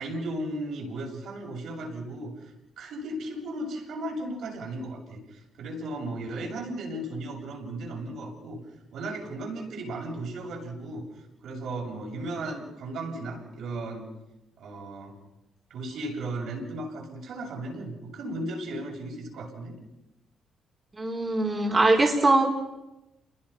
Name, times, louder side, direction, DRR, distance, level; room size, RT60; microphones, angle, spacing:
voice 1, 0.0-8.6 8.9-11.0 11.4-14.1 14.6-15.2 15.7-19.8, right 1 dB, 75° right, -1 dB, 7.4 m, -35 dB
voice 2, 21.0-22.4, right 2 dB, 25° right, -1 dB, 4.2 m, -22 dB
29.0 x 21.5 x 5.8 m, 0.96 s
cardioid pair, 90°, 0 cm